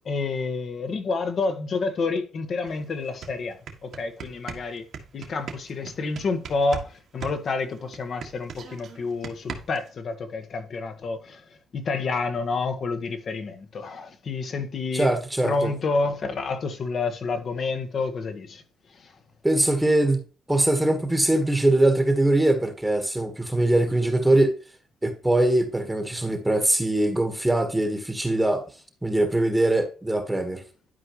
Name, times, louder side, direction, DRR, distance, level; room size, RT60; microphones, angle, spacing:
voice 1, 0.0-4.8 5.1-11.4 11.7-15.1 15.4-18.6 19.0-19.1, left 4 dB, 55° left, 1.3 m, -29 dB
sound 1, 2.7-2.8 3.1-6.9 7.2-9.9, right 6 dB, 65° right, 1.7 m, -38 dB
voice 2, 14.9-15.7 19.4-20.2 20.5-24.5 25.0-28.6 29.0-30.6, right 1 dB, 10° right, 1.3 m, -22 dB
12.0 x 4.7 x 3.0 m
cardioid pair, 90°, 0 cm